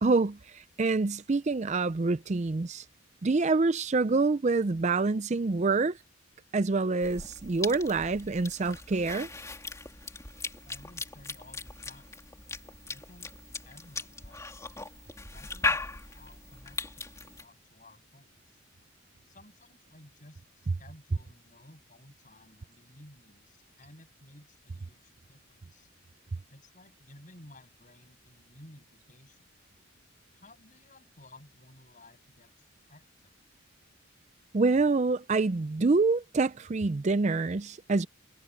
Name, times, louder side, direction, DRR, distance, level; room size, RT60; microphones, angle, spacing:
voice 1, 0.0-2.9 3.2-6.0 6.5-9.3 34.5-38.1, right 3 dB, 35° right, 0.4 m, -26 dB
Cough / Chewing mastication, 7.0-17.5, left 3 dB, 15° left, 2.9 m, -38 dB
voice 2, 10.6-12.2 12.9-13.3 13.6-14.6 15.3-18.6 19.2-25.9 26.5-29.5 30.3-33.3, left 1 dB, 35° left, 7.2 m, -55 dB
head